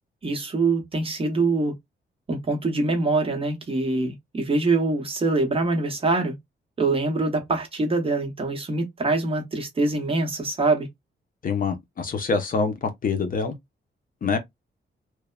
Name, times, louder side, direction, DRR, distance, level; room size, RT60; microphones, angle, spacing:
voice 1, 0.2-1.7 2.3-6.3 6.8-10.9, right 3 dB, 30° right, 0.8 m, -24 dB
voice 2, 11.4-13.5 14.2-14.4, left 5 dB, 45° left, 0.6 m, -25 dB
3.0 x 2.0 x 2.2 m
wide cardioid pair, 155°, 19 cm